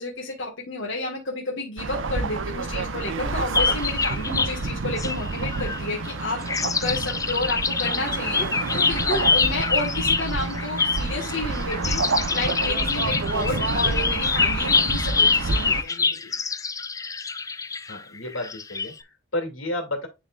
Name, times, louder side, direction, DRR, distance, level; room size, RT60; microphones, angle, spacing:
voice 1, 0.0-16.3, left 2 dB, 65° left, -3 dB, 1.6 m, -31 dB
sound 1, 1.8-15.8, right 3 dB, 75° right, 0.8 m, -28 dB
sound 2, 3.5-4.5 5.0-6.1 6.4-18.9, left 5 dB, 15° left, 0.4 m, -25 dB
voice 2, 17.9-20.1, left 1 dB, 80° left, 4 dB, 2.5 m, -31 dB
10.5 x 3.8 x 2.4 m, 0.25 s
head